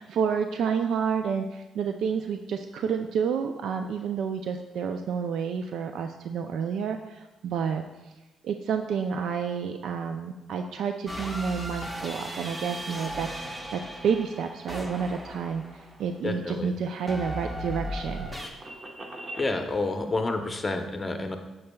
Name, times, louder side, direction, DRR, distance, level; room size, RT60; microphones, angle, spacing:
voice 1, 0.0-7.8 8.4-13.4 13.7-18.3, right 6 dB, 75° right, 6 dB, 0.4 m, -29 dB
sound 1, 11.1-16.2 17.1-18.5, equal, 15° right, 1.0 m, -37 dB
voice 2, 16.2-16.7 19.4-21.4, left 2 dB, 20° left, 5 dB, 0.8 m, -29 dB
sound 2, 16.8-19.5, right 2 dB, 40° right, 1.0 m, -43 dB
8.5 x 6.5 x 2.3 m, 1.1 s
cardioid pair, 90°, 0 cm